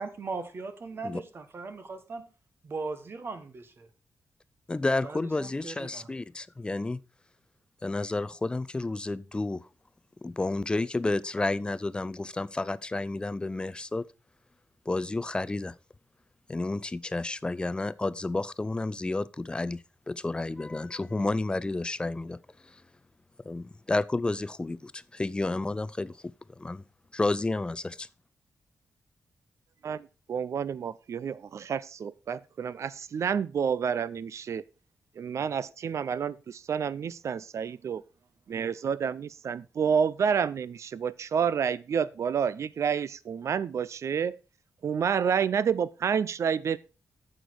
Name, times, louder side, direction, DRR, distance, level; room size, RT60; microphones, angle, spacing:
voice 1, 0.0-2.3 2.6-3.9 5.0-6.1, right 4 dB, 45° right, 1.3 m, -38 dB
voice 2, 4.7-7.0 7.8-9.7 10.2-14.1 14.9-15.7 16.5-22.8 23.4-26.1 26.6-26.8 27.1-28.1, left 2 dB, 15° left, 0.4 m, -31 dB
voice 3, 29.8-34.6 35.2-38.0 38.5-44.4 44.8-46.8, right 7 dB, 60° right, 0.5 m, -29 dB
9.2 x 6.5 x 4.6 m
wide cardioid pair, 135°, 6 cm